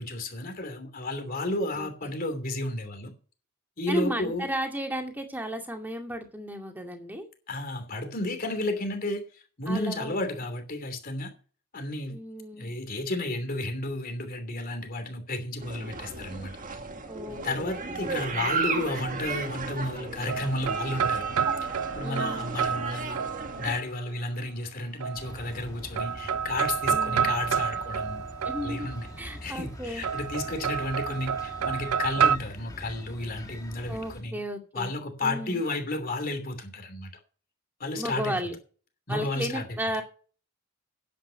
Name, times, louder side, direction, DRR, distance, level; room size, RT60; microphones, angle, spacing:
voice 1, 0.0-3.1 3.8-4.5 7.5-11.3 11.7-12.2 12.6-16.5 17.4-23.2 23.6-28.2 28.6-29.1 29.4-34.4 34.7-37.1 37.8-38.4 39.1-39.7 39.9-40.0, left 2 dB, 40° left, 2.9 m, -32 dB
voice 2, 3.9-7.3 9.7-10.1 12.1-12.7 17.1-18.5 22.0-22.5 26.9-27.3 28.4-28.9 29.2-30.0 33.9-34.9 35.2-35.6 37.9-38.6 39.1-40.0, equal, 10° right, 2.2 m, -34 dB
sound 1, 15.6-23.8, right 4 dB, 40° right, 1.7 m, -34 dB
sound 2, 19.9-23.8 25.0-25.7 26.0-29.2 30.0-32.4, right 7 dB, 75° right, 0.5 m, -29 dB
sound 3, 25.2-34.2, equal, 15° left, 1.5 m, -44 dB
10.5 x 8.5 x 6.6 m
head